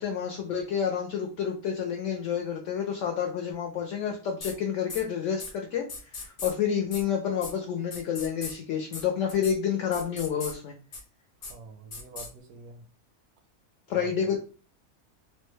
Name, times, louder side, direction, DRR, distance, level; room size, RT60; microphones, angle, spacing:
voice 1, 0.0-10.7 13.9-14.4, left 8 dB, 70° left, 0.8 m, -29 dB
sound 1, 4.4-4.5 4.9-5.0 5.4-5.5 5.9-6.5 6.9-7.0 7.4-7.5 7.9-8.5 8.9-9.0 9.3-9.5 9.9-10.5 10.9-11.0 11.4-11.5 11.9-12.3, left 4 dB, 90° left, 0.3 m, -38 dB
voice 2, 11.4-12.9 14.0-14.4, right 4 dB, 80° right, 1.1 m, -46 dB
3.2 x 2.2 x 3.1 m
omnidirectional pair, 1.5 m